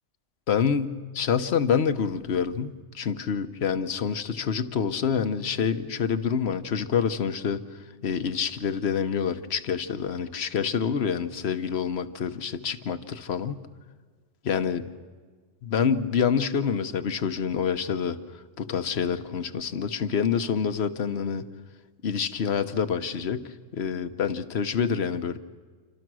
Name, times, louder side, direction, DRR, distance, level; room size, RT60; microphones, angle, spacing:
voice 1, 0.5-7.6 8.0-13.6 14.4-14.8 15.6-18.2 18.6-21.4 22.0-25.4, left 7 dB, 55° left, 10 dB, 1.2 m, -27 dB
27.5 x 25.5 x 6.3 m, 1.5 s
omnidirectional pair, 1.3 m